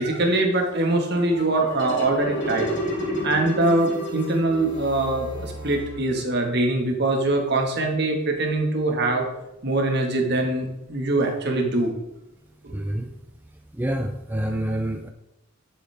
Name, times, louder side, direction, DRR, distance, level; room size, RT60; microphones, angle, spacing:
voice 1, 0.0-2.7 3.2-9.3 9.6-11.9 12.6-12.8, right 2 dB, 50° right, 2 dB, 1.8 m, -23 dB
sound 1, 1.1-6.4, equal, 55° left, 3.8 m, -31 dB
voice 2, 12.7-13.1 13.7-15.1, right 1 dB, 10° right, 4 dB, 0.4 m, -27 dB
11.0 x 7.2 x 3.5 m, 0.91 s
head